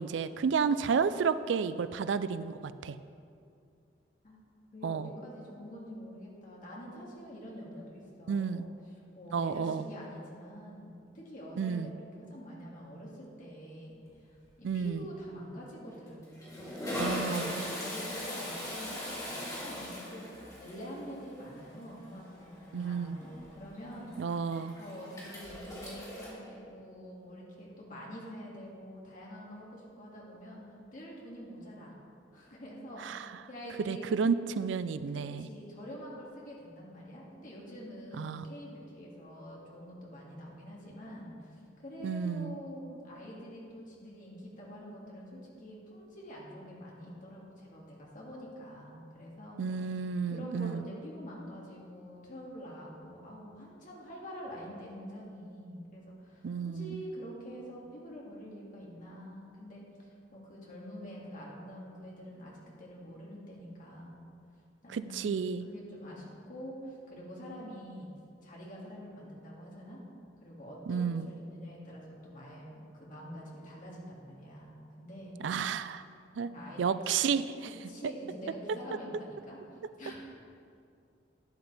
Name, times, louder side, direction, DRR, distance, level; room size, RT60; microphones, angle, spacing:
voice 1, 0.0-3.0 4.8-5.1 8.3-8.7 9.3-9.8 11.6-11.9 14.6-15.1 17.0-17.6 22.7-23.2 24.2-24.7 33.0-33.3 33.9-35.5 38.2-38.4 42.0-42.5 49.6-50.8 56.4-57.0 64.9-65.6 70.9-71.3 75.4-76.0 76.4-76.5 76.8-77.4, right 6 dB, 85° right, 14 dB, 0.4 m, -31 dB
voice 2, 4.7-8.7 9.1-24.5 24.8-30.6 30.9-31.9 32.3-34.1 35.1-50.0 50.3-64.2 64.8-68.1 68.4-70.0 70.4-75.4 76.4-77.2 77.9-79.6 80.0-80.1, equal, 45° left, -4 dB, 2.3 m, -46 dB
Toilet flush, 14.1-14.5 14.7-14.9 15.8-26.3, left 1 dB, 20° left, 2.6 m, -40 dB
11.5 x 9.9 x 3.4 m, 2.5 s
head